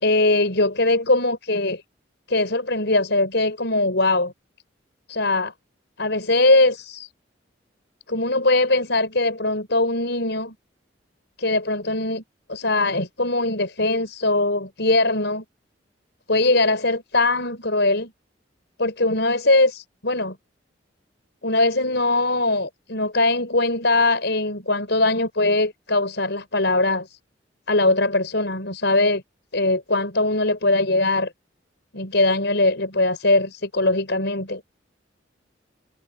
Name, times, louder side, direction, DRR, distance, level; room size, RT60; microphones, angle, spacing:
voice 1, 0.0-1.8 2.3-4.3 5.1-5.5 6.0-7.1 8.1-10.6 11.4-12.2 12.5-15.4 16.3-18.1 18.8-20.4 21.4-27.2 27.7-29.2 29.5-31.3 31.9-34.6, left 2 dB, 65° left, 5.2 m, -21 dB
head